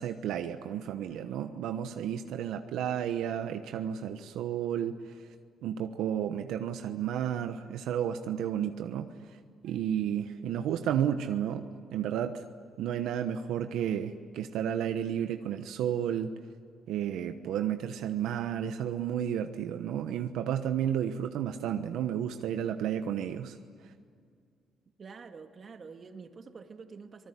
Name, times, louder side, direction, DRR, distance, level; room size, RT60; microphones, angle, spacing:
voice 1, 0.0-5.1 5.6-9.1 9.6-12.4 12.8-16.3 16.9-23.6, right 9 dB, 85° right, 7 dB, 1.1 m, -32 dB
voice 2, 25.0-27.3, right 5 dB, 45° right, 6 dB, 2.2 m, -47 dB
25.5 x 19.5 x 9.9 m, 2.1 s
cardioid pair, 90°, 0 cm